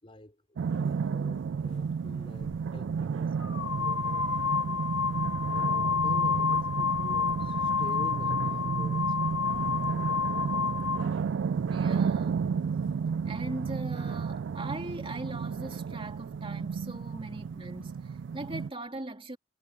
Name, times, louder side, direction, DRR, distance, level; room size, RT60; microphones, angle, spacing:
voice 1, 0.0-4.9 5.5-9.5, left 1 dB, 30° left, 4.7 m, -49 dB
sound 1, 0.6-18.7, right 6 dB, 65° right, 0.3 m, -32 dB
sound 2, 2.4-2.6 3.4-11.1, left 6 dB, 80° left, 1.1 m, -29 dB
voice 2, 11.6-12.5 13.2-19.4, right 2 dB, 30° right, 2.6 m, -40 dB
head